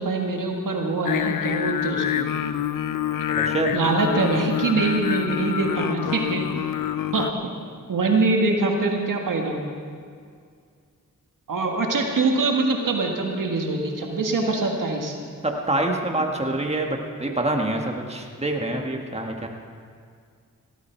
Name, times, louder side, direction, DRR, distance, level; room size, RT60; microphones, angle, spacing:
voice 1, 0.0-2.3 3.7-6.4 7.1-7.3 7.9-9.6 11.5-15.1, right 3 dB, 75° right, 1 dB, 1.8 m, -23 dB
Singing, 1.1-7.3, left 10 dB, 80° left, 0.6 m, -26 dB
voice 2, 3.4-3.7 15.4-19.5, right 1 dB, 20° right, 1 dB, 1.8 m, -26 dB
17.0 x 13.5 x 4.6 m, 2.2 s
cardioid pair, 55°, 32 cm